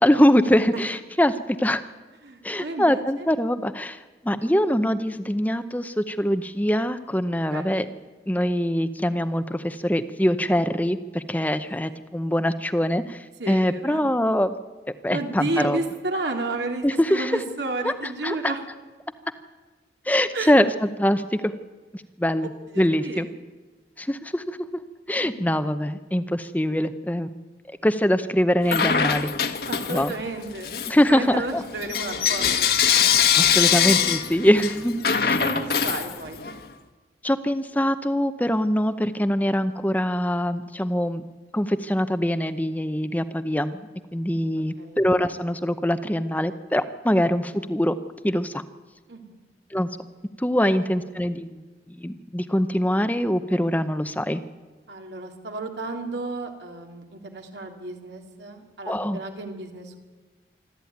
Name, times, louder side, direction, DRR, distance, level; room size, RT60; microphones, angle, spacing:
voice 1, 0.0-1.8 2.4-7.9 8.3-14.5 15.0-15.8 16.8-17.4 17.8-17.9 18.2-18.5 20.1-20.7 21.0-21.5 21.9-22.5 22.8-23.3 24.0-24.6 25.1-27.3 27.8-29.3 29.9-30.1 30.9-31.6 32.9-33.1 33.3-35.4 37.2-41.2 41.5-43.8 44.1-47.9 48.2-48.6 49.7-49.9 50.4-51.6 51.9-54.4 58.9-59.2, equal, 10° left, 10 dB, 0.7 m, -23 dB
voice 2, 2.2-3.0 7.5-7.9 13.4-14.0 15.1-18.6 20.3-20.5 22.4-23.3 25.2-25.6 29.7-30.8 31.1-32.7 33.5-34.3 35.2-36.5 44.7-45.0 49.1-49.3 50.6-51.0 54.9-60.0, right 2 dB, 80° right, 3 dB, 3.0 m, -32 dB
Bell / Coin (dropping), 28.7-30.2 30.6-36.6, left 8 dB, 60° left, 1.4 m, -23 dB
25.5 x 13.5 x 9.4 m, 1.3 s
head